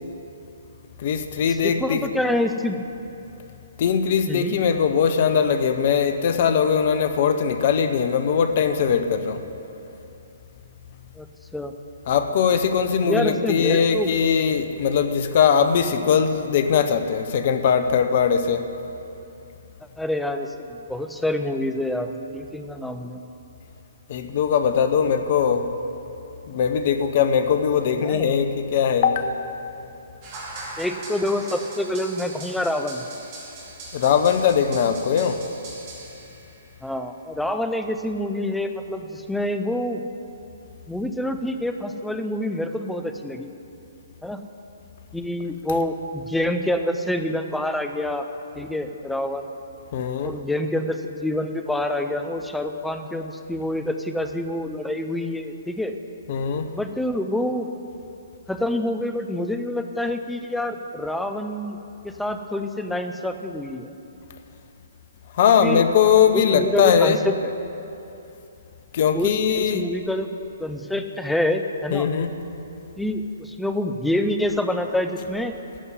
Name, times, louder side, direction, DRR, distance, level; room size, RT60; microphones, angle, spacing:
voice 1, 1.0-2.1 3.8-9.4 12.1-18.6 24.1-25.7 26.5-29.4 33.9-35.4 49.9-50.3 56.3-56.7 65.3-67.2 68.9-69.9 71.9-72.4, left 7 dB, 45° left, 9 dB, 0.8 m, -20 dB
voice 2, 1.6-2.8 4.3-4.6 11.2-11.3 11.5-11.7 13.0-14.1 20.0-23.2 28.0-28.3 30.8-33.0 36.8-40.0 40.9-43.5 44.2-44.4 45.1-48.3 48.6-49.5 50.2-55.9 56.7-57.7 58.5-61.8 62.0-63.9 65.5-65.8 66.3-67.3 69.1-70.3 70.6-72.1 73.0-75.5, left 1 dB, 5° left, 6 dB, 0.6 m, -27 dB
sound 1, 30.2-36.6, right 2 dB, 35° right, 2.6 m, -40 dB
14.0 x 5.5 x 9.5 m, 2.8 s
figure-of-eight pair, 125°, 0 cm